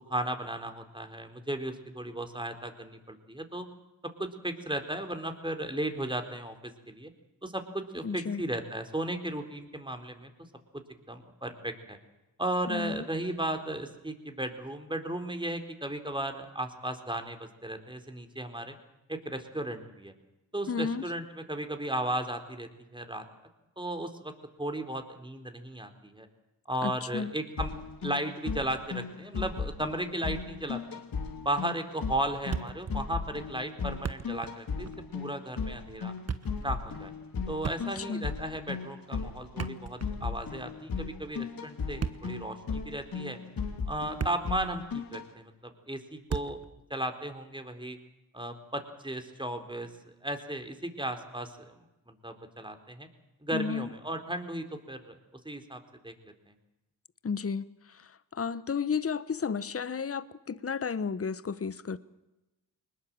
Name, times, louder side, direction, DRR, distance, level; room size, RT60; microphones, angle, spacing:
voice 1, 0.1-3.7 4.2-7.1 7.4-10.3 11.1-12.0 12.4-18.7 19.1-20.1 20.5-23.2 23.8-26.3 26.7-31.0 31.4-36.1 36.6-37.1 37.5-43.4 43.9-46.6 46.9-48.0 48.3-49.9 50.2-51.8 52.1-53.1 53.4-55.2 55.4-56.3, right 1 dB, 10° right, 6 dB, 4.1 m, -35 dB
voice 2, 8.0-8.4 12.7-13.1 20.7-21.0 26.8-27.3 38.0-38.3 53.5-53.9 57.2-62.0, left 5 dB, 35° left, 16 dB, 1.2 m, -33 dB
sound 1, 27.6-45.2, left 5 dB, 55° left, 3.1 m, -37 dB
Thump thud, 32.5-33.0 33.3-33.4 33.9-34.6 34.9-35.0 36.0-36.7 37.6-38.2 39.4-40.4 41.8-42.5 43.2-43.3 43.9-44.7 44.9-45.1 46.3-46.7, right 6 dB, 35° right, 1.3 m, -36 dB
22.5 x 20.0 x 7.7 m, 0.99 s
supercardioid pair, 50°, 42 cm